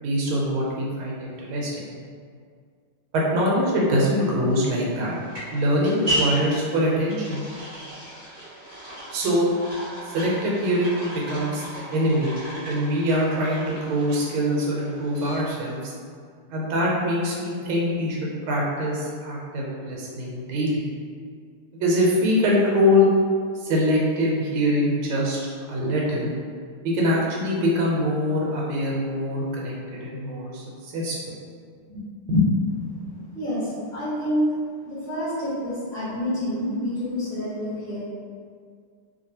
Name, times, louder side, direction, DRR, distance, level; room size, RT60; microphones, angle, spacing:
voice 1, 0.0-1.9 3.1-5.1 5.5-7.4 9.1-9.5 10.1-11.6 11.9-12.4 12.7-15.9 16.5-20.9 21.8-23.1 23.6-25.4 25.7-26.3 26.8-31.1 31.9-32.0 32.3-32.5 32.8-32.9, equal, 75° right, -3 dB, 1.4 m, -23 dB
sound 1, 4.5-15.7, right 1 dB, 30° right, 0.9 m, -35 dB
voice 2, 33.3-34.5 34.8-38.0, equal, 5° left, -11 dB, 0.5 m, -28 dB
2.9 x 2.8 x 2.7 m, 2.1 s
omnidirectional pair, 2.3 m